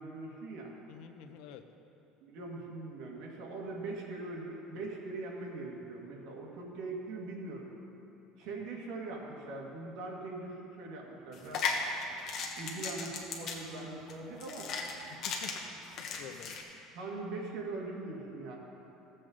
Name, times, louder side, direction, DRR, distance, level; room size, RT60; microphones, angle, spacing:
voice 1, 0.0-0.7 2.2-7.7 8.4-11.6 12.6-14.7 16.9-18.6, right 3 dB, 60° right, -1 dB, 1.8 m, -41 dB
voice 2, 0.9-1.7 4.7-4.9 15.0-15.6 16.0-16.9, left 8 dB, 70° left, 8 dB, 0.7 m, -50 dB
sound 1, 11.3-16.6, left 5 dB, 40° left, 1.2 m, -37 dB
16.5 x 7.7 x 3.8 m, 3.0 s
cardioid pair, 160°, 0 cm